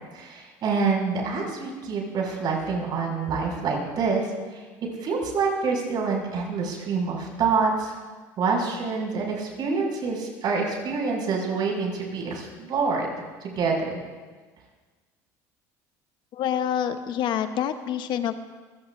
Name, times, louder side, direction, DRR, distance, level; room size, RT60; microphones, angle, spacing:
voice 1, 0.1-4.6 5.0-7.9 8.4-13.1 13.4-14.0, right 4 dB, 50° right, -1 dB, 6.2 m, -26 dB
voice 2, 16.3-18.4, left 9 dB, 55° left, 9 dB, 1.0 m, -27 dB
28.0 x 16.0 x 2.6 m, 1.4 s
hypercardioid pair, 85°, 9 cm